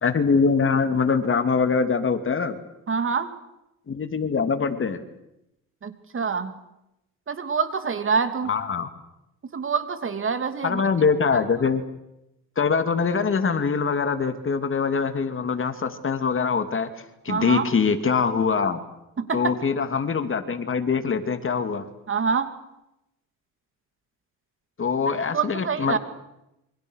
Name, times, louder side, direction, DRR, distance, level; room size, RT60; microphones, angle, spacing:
voice 1, 0.0-2.6 3.9-5.0 8.5-8.9 10.6-11.8 12.6-16.9 17.2-18.8 19.3-21.9 24.8-26.0, left 5 dB, 35° left, 9 dB, 2.7 m, -23 dB
voice 2, 2.9-3.3 5.8-6.6 7.3-8.5 9.5-10.8 17.3-17.7 19.2-19.5 22.1-22.5 25.3-26.0, right 5 dB, 35° right, 9 dB, 2.8 m, -26 dB
28.5 x 25.5 x 6.5 m, 0.89 s
cardioid pair, 95°, 35 cm